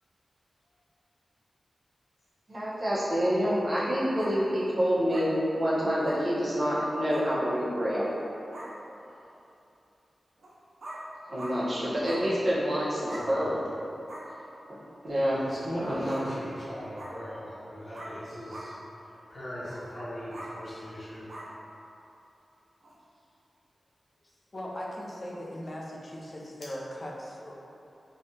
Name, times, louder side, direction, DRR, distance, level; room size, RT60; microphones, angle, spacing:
voice 1, 2.5-8.1 11.3-13.5 15.0-15.4 15.7-16.3, equal, 50° right, -9 dB, 0.8 m, -27 dB
sound 1, 4.1-4.3 5.1-5.3 6.0-6.2 7.1-7.3 8.1-8.2 8.5-8.7 10.4-10.5 10.8-11.0 11.4-11.5 12.0-12.2 13.0-13.3 14.1-14.2 16.1-16.3 17.0-17.1 17.9-18.2 18.5-18.7 19.7-19.8 20.3-20.5 21.3-21.5 22.8-22.9, right 1 dB, 70° right, 0.5 m, -42 dB
voice 2, 15.2-18.7 19.3-21.3, equal, 55° left, -11 dB, 0.9 m, -39 dB
voice 3, 24.5-27.5, equal, 40° left, -3 dB, 0.4 m, -39 dB
3.2 x 2.3 x 2.7 m, 2.8 s
wide cardioid pair, 70°, 0 cm